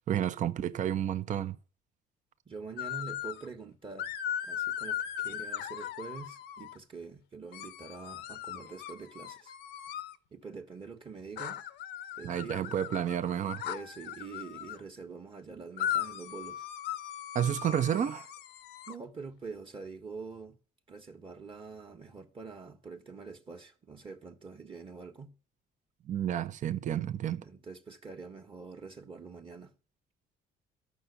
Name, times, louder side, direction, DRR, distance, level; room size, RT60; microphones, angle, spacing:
voice 1, 0.1-1.6 12.2-13.6 17.3-18.3 26.1-27.4, right 10 dB, 45° right, 0.7 m, -30 dB
voice 2, 2.4-4.1 4.4-9.5 10.3-11.6 12.2-12.8 13.6-16.7 18.9-20.6 20.9-25.3 27.4-29.7, right 4 dB, 30° right, 1.4 m, -45 dB
sound 1, 2.8-3.5 4.0-6.8 7.5-10.2 11.4-14.8 15.8-18.9, left 11 dB, 80° left, 0.8 m, -38 dB
13.0 x 5.9 x 8.3 m
cardioid pair, 110°, 17 cm